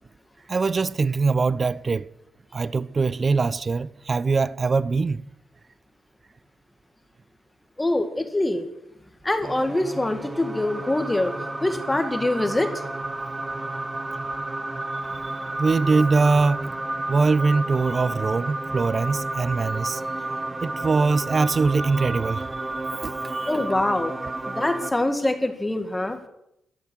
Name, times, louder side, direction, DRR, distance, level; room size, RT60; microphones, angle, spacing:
voice 1, 0.5-2.1 2.5-5.2 15.2-15.3 15.6-16.7 17.1-20.0 20.6-22.5 23.0-23.5, right 4 dB, 40° right, 0.5 m, -22 dB
voice 2, 7.8-8.6 9.2-11.3 11.6-12.7 23.5-24.1 24.5-26.2, left 1 dB, 15° left, 1.9 m, -24 dB
sound 1, 9.4-24.9, right 2 dB, 20° right, 0.9 m, -31 dB
13.0 x 12.5 x 6.2 m
supercardioid pair, 55°, 0 cm